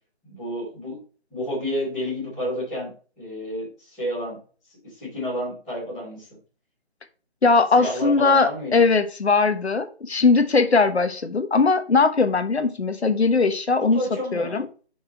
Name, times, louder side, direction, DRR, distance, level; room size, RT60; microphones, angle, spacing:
voice 1, 0.2-1.0 1.3-2.9 3.2-4.4 4.8-6.3 7.7-8.9 13.9-14.6, equal, ahead, 1.1 m, -30 dB
voice 2, 7.4-14.0 14.3-14.7, left 4 dB, 75° left, 1.3 m, -20 dB
6.1 x 4.9 x 4.2 m
figure-of-eight pair, 175°, 33 cm